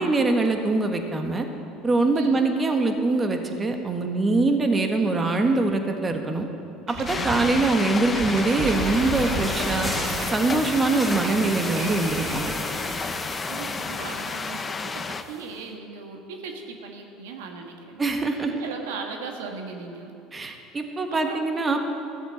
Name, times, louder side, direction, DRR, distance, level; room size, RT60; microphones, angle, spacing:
voice 1, 0.0-1.5 1.8-6.5 7.0-9.9 10.3-12.5 18.0-18.5 20.3-21.8, right 3 dB, 25° right, 5 dB, 1.5 m, -23 dB
sound 1, 6.9-13.1, right 3 dB, 55° right, 2.5 m, -33 dB
sound 2, 7.1-15.2, left 4 dB, 25° left, 0.8 m, -31 dB
sound 3, 8.0-15.5, left 1 dB, 5° left, 1.7 m, -37 dB
voice 2, 13.5-18.1 18.4-20.1 21.1-21.4, right 5 dB, 85° right, 3 dB, 1.4 m, -38 dB
13.5 x 8.0 x 8.0 m, 2.7 s
hypercardioid pair, 85°, 0 cm